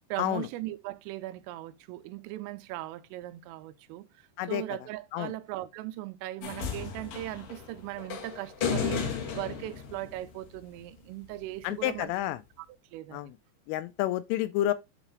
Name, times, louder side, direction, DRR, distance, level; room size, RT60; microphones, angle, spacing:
voice 1, 0.1-4.1 4.5-12.1 12.6-12.7 12.9-13.3, right 16 dB, 85° right, 3.2 m, -39 dB
sound 1, 6.4-10.8 11.9-12.0, left 6 dB, 55° left, 2.9 m, -34 dB
voice 2, 11.6-12.4 13.1-13.3 13.7-14.7, left 14 dB, 85° left, 2.9 m, -29 dB
11.5 x 3.9 x 3.1 m
omnidirectional pair, 5.9 m